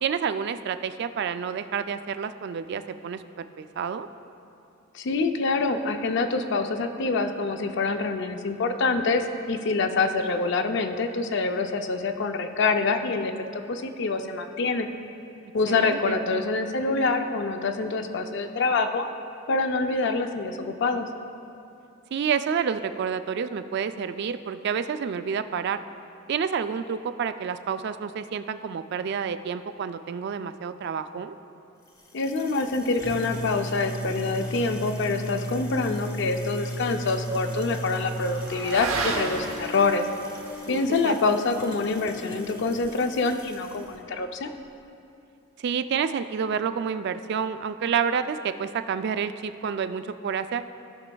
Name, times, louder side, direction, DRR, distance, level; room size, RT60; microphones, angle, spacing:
voice 1, 0.0-4.1 15.7-16.2 22.1-25.8 26.3-31.3 40.7-41.2 45.6-50.6, right 7 dB, 55° right, 10 dB, 0.3 m, -29 dB
voice 2, 4.9-14.9 15.5-19.1 19.5-21.1 32.1-40.0 40.7-44.5, left 3 dB, 60° left, 7 dB, 0.5 m, -26 dB
sound 1, 31.9-43.9, equal, 15° left, 0.8 m, -36 dB
Motorcycle / Accelerating revving vroom, 36.0-44.7, right 3 dB, 85° right, 0.8 m, -37 dB
16.0 x 5.9 x 2.3 m, 2.7 s
head